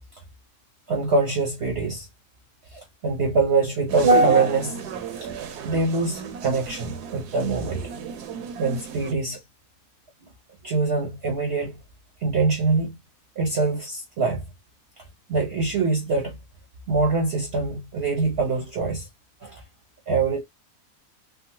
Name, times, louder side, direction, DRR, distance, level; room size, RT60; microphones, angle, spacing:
voice 1, 0.9-2.1 2.7-4.8 5.2-5.3 5.6-7.8 8.6-9.4 10.6-11.8 12.2-13.0 13.4-14.4 15.0-15.1 15.3-16.4 16.9-19.1 19.4-19.6 20.1-20.4, right 3 dB, 50° right, 0.8 m, -23 dB
sound 1, 3.9-9.1, right 7 dB, 80° right, 1.3 m, -34 dB
3.6 x 2.1 x 2.7 m
omnidirectional pair, 1.7 m